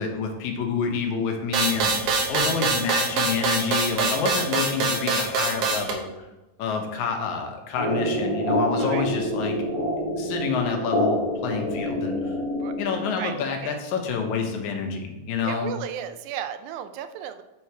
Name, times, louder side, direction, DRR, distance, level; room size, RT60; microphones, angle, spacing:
voice 1, 0.0-1.9 2.3-6.1 6.6-9.6 10.2-12.4 12.8-15.7, left 5 dB, 80° left, 3 dB, 2.3 m, -28 dB
sound 1, 1.5-5.9, right 3 dB, 65° right, 1.9 m, -24 dB
sound 2, 7.8-13.3, equal, 20° left, 0.7 m, -27 dB
voice 2, 15.5-17.4, right 9 dB, 85° right, 9 dB, 2.0 m, -34 dB
8.7 x 3.8 x 4.5 m, 0.99 s
omnidirectional pair, 3.4 m